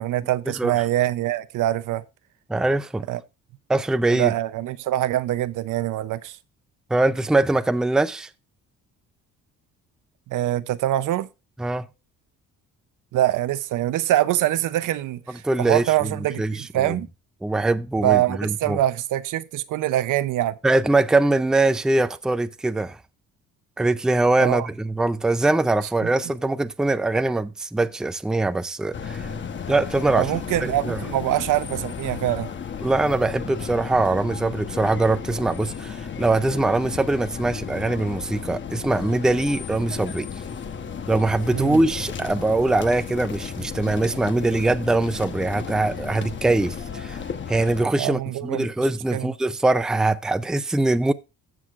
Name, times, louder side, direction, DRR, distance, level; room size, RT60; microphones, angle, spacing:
voice 1, 0.0-2.0 3.1-3.2 4.1-6.4 10.3-11.3 13.1-17.1 18.0-20.6 24.4-24.7 26.0-26.1 30.1-32.5 41.5-41.8 48.0-48.7 49.1-49.3, right 14 dB, 75° right, 0.7 m, -24 dB
voice 2, 2.5-3.1 3.7-4.3 6.9-8.3 11.6-11.9 15.4-16.1 16.4-17.0 17.4-18.8 20.6-23.0 23.8-29.3 29.7-30.3 30.6-31.0 32.8-40.3 41.1-47.2 47.5-51.1, right 2 dB, ahead, 0.4 m, -22 dB
sound 1, 28.9-47.9, left 6 dB, 40° left, 1.0 m, -34 dB
15.0 x 6.3 x 2.4 m
cardioid pair, 125°, 31 cm